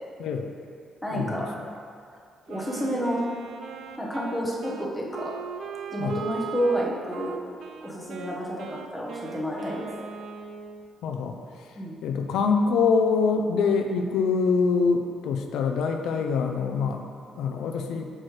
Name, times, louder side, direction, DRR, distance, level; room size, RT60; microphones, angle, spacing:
voice 1, 0.2-0.5 1.1-1.4 6.0-6.2 11.0-11.7 12.0-17.0 17.3-18.1, left 5 dB, 90° left, 4 dB, 0.5 m, -25 dB
voice 2, 1.0-1.5 2.5-3.2 4.0-5.3 5.9-7.4 7.8-9.9 11.7-12.0, equal, ahead, -5 dB, 1.1 m, -29 dB
Wind instrument woodwind instrument, 2.5-10.9, right 6 dB, 60° right, 0.4 m, -39 dB
8.5 x 6.1 x 3.3 m, 2.3 s
cardioid pair, 160°, 0 cm